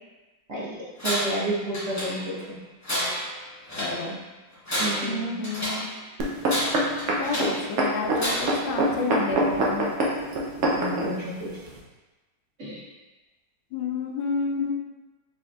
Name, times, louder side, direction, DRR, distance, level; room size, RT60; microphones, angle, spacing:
Tools, 1.0-1.4 1.7-2.4 2.8-4.0 4.5-5.9 6.4-7.6 8.2-8.7, equal, 25° left, 0.3 m, -30 dB
voice 1, 1.0-2.4 4.8-5.3 10.7-11.5 12.6-12.8, right 1 dB, 55° right, -8 dB, 0.9 m, -30 dB
voice 2, 3.8-4.2 5.0-5.8 7.2-9.9 13.7-14.7, left 4 dB, 90° left, 2 dB, 1.3 m, -30 dB
sound 1, 6.2-11.1 11.8-11.9, right 1 dB, 80° right, 0.6 m, -24 dB
4.1 x 3.2 x 2.2 m, 1.1 s
omnidirectional pair, 2.0 m